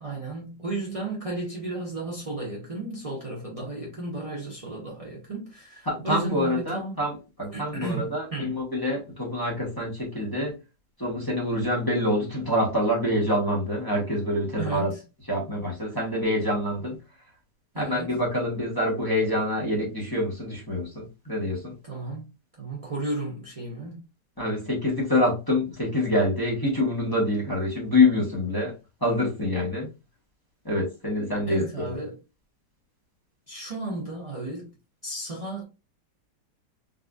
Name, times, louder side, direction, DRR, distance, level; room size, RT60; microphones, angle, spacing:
voice 1, 0.0-7.0 7.5-8.5 14.6-15.0 17.7-18.1 21.9-22.3 22.6-24.0 31.5-32.2 33.5-34.7 35.0-35.6, right 2 dB, 70° right, 0.3 m, -34 dB
voice 2, 5.9-7.1 7.4-10.6 11.0-14.9 15.3-17.0 17.8-21.8 24.4-28.7 29.0-29.9 30.6-31.8, left 1 dB, 15° left, 0.8 m, -26 dB
3.9 x 2.6 x 2.3 m
omnidirectional pair, 1.9 m